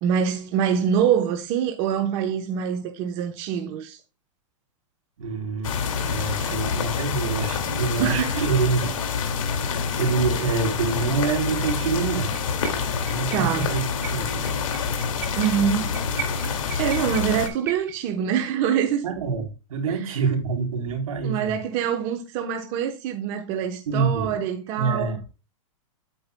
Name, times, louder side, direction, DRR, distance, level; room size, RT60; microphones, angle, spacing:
voice 1, 0.0-4.0 8.0-8.4 13.3-13.7 15.3-16.0 16.4-19.0 19.9-20.0 21.2-25.2, right 8 dB, 30° right, 1.0 m, -25 dB
voice 2, 5.2-5.7 6.1-9.0 9.9-12.4 13.1-13.8 14.1-14.5 19.0-21.6 23.9-24.4 24.8-25.2, right 5 dB, 85° right, 3.7 m, -26 dB
sound 1, 5.6-17.5, left 6 dB, 75° left, 2.4 m, -27 dB
sound 2, 11.7-11.9 12.3-18.1, right 9 dB, 15° right, 0.5 m, -39 dB
9.0 x 8.9 x 2.3 m
supercardioid pair, 165°, 17 cm